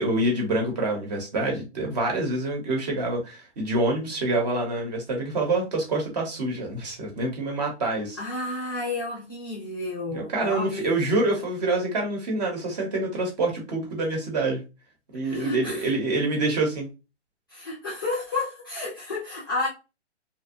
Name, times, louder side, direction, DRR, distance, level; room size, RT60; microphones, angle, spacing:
voice 1, 0.0-8.2 10.1-14.6 15.1-16.9, right 2 dB, 35° right, 0.9 m, -26 dB
voice 2, 8.2-11.2 15.2-15.9 17.5-19.7, left 2 dB, 20° left, 0.4 m, -31 dB
2.6 x 2.2 x 2.4 m
hypercardioid pair, 155°, 35 cm